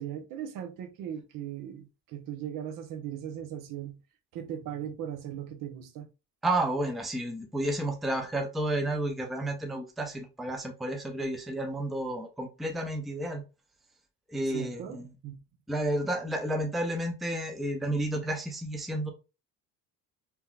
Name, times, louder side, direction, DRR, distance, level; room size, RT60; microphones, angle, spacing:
voice 1, 0.0-4.0 4.3-6.1 14.5-15.4, right 10 dB, 60° right, 0.8 m, -38 dB
voice 2, 6.4-13.4 14.3-15.0 15.7-19.1, right 1 dB, ahead, 0.5 m, -31 dB
3.6 x 2.9 x 2.3 m
cardioid pair, 120°, 37 cm